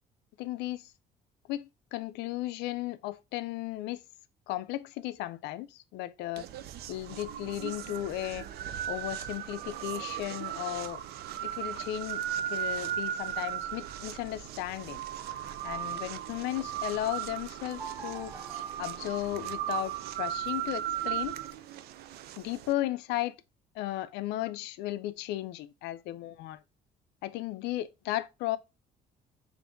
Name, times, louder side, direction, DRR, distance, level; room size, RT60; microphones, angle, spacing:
voice 1, 0.4-0.8 1.5-4.0 4.5-6.4 6.9-8.5 8.9-11.0 11.4-12.2 12.5-15.0 15.6-18.3 18.8-21.4 22.4-23.3 23.8-26.6 27.2-28.6, left 15 dB, 85° left, 0.4 m, -35 dB
sound 1, 6.4-22.7, right 11 dB, 70° right, 0.4 m, -37 dB
sound 2, 14.3-16.5 17.8-20.0, right 2 dB, 10° right, 0.4 m, -49 dB
5.4 x 2.6 x 2.5 m
cardioid pair, 110°, 17 cm